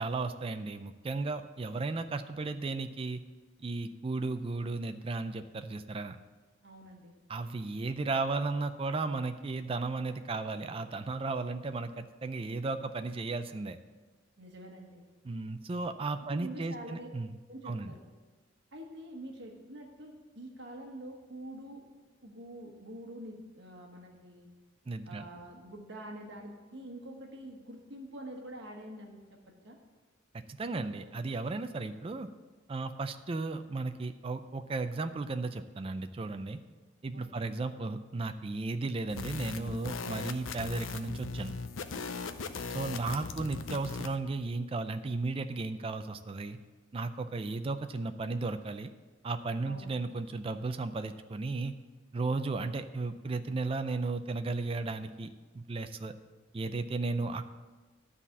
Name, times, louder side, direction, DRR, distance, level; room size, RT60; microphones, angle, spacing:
voice 1, 0.0-3.2 3.6-6.2 7.3-13.8 15.2-17.3 17.6-17.9 24.9-25.2 30.5-32.3 32.7-36.6 37.0-41.5 42.7-46.6 46.9-48.9 49.2-51.7 52.1-55.3 55.5-56.1 56.5-57.5, right 3 dB, 30° right, 9 dB, 0.4 m, -35 dB
voice 2, 6.6-7.2 14.4-15.1 16.3-17.1 17.5-18.0 18.7-21.8 22.2-24.5 25.0-29.2 29.6-29.8 37.1-37.5 42.9-43.3 49.6-50.0, right 1 dB, 60° right, 1 dB, 1.3 m, -46 dB
sound 1, 39.1-44.1, left 4 dB, 85° left, 0.6 m, -39 dB
12.0 x 4.2 x 7.1 m, 1.3 s
head